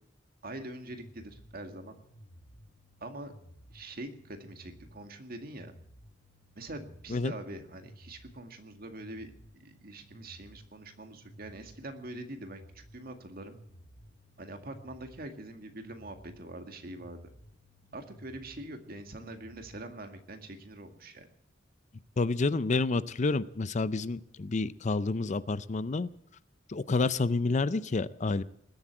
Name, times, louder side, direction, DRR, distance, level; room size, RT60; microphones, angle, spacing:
voice 1, 0.4-2.0 3.0-3.3 3.7-5.7 6.6-9.3 9.6-13.6 14.4-17.2 17.9-21.3, right 1 dB, 55° right, 6 dB, 2.0 m, -44 dB
sound 1, 0.9-19.9, equal, 70° left, 1.9 m, -56 dB
voice 2, 22.2-26.1 26.7-28.4, left 3 dB, 40° left, 16 dB, 0.5 m, -29 dB
20.0 x 8.0 x 8.8 m, 0.71 s
head